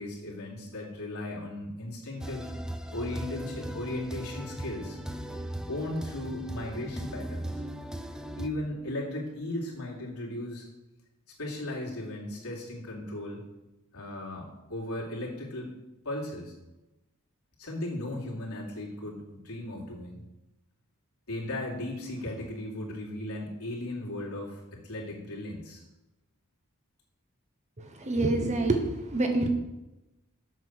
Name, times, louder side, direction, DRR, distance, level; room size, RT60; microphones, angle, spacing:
voice 1, 0.0-2.5 2.9-5.0 5.7-7.6 8.4-10.7 11.4-13.4 13.9-15.7 16.0-16.5 17.6-20.2 21.3-25.8, left 1 dB, 75° left, -3 dB, 2.8 m, -36 dB
sound 1, 2.2-8.5, right 1 dB, 5° right, 0.5 m, -38 dB
voice 2, 27.8-29.5, right 2 dB, 30° right, 5 dB, 0.9 m, -27 dB
7.7 x 6.6 x 6.3 m, 1.0 s
head